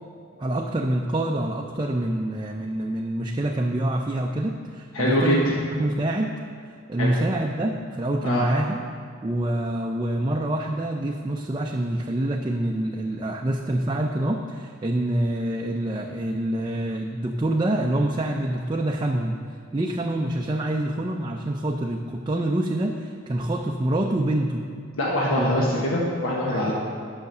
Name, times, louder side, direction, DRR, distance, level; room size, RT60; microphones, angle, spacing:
voice 1, 0.4-5.5 5.7-6.3 6.9-8.8 9.2-19.4 19.7-24.6 25.4-25.8 26.5-26.7, right 1 dB, 20° right, 1 dB, 0.4 m, -26 dB
voice 2, 4.9-5.4 7.0-7.1 8.2-8.5 25.0-26.7, left 1 dB, 85° left, -4 dB, 1.3 m, -23 dB
9.4 x 5.9 x 6.6 m, 2.2 s
head